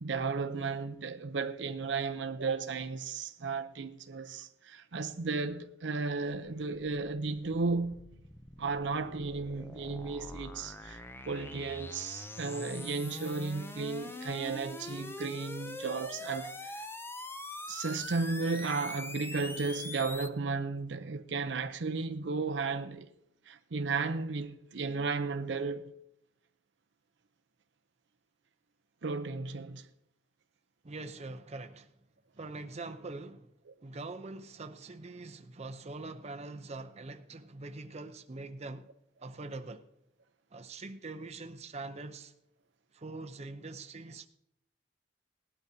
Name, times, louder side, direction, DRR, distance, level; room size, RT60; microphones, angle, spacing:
voice 1, 0.0-8.0 8.6-16.9 17.7-23.1 23.5-25.9 29.0-29.9, right 4 dB, 75° right, 0.6 m, -34 dB
sound 1, 6.8-20.3, left 2 dB, 15° left, 0.5 m, -44 dB
voice 2, 30.8-31.9 32.3-33.5 33.8-38.9 39.2-39.9 40.5-42.3 42.9-44.3, right 3 dB, 35° right, 0.7 m, -43 dB
18.5 x 12.0 x 2.8 m
head